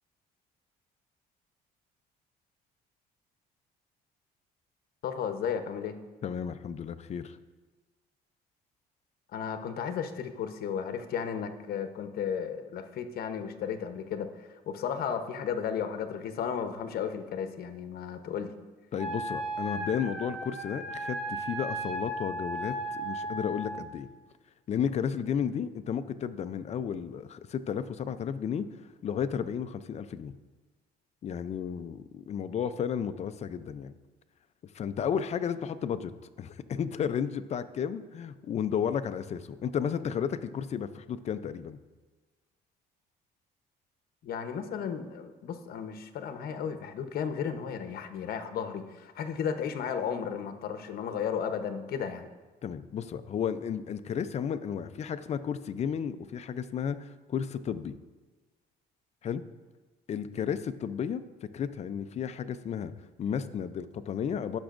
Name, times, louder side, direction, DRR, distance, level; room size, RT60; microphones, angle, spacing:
voice 1, 5.0-6.0 9.3-18.5 44.2-52.3, left 7 dB, 65° left, 8 dB, 0.9 m, -34 dB
voice 2, 6.2-7.4 18.9-24.1 24.7-28.7 29.0-30.3 31.2-33.9 34.7-36.1 36.4-41.8 52.6-57.9 59.2-59.4 60.1-62.9 63.2-64.6, left 8 dB, 40° left, 12 dB, 0.5 m, -33 dB
Wind instrument woodwind instrument, 19.0-23.9, right 1 dB, ahead, 1.1 m, -35 dB
16.5 x 6.2 x 2.5 m, 1.3 s
cardioid pair, 110°, 17 cm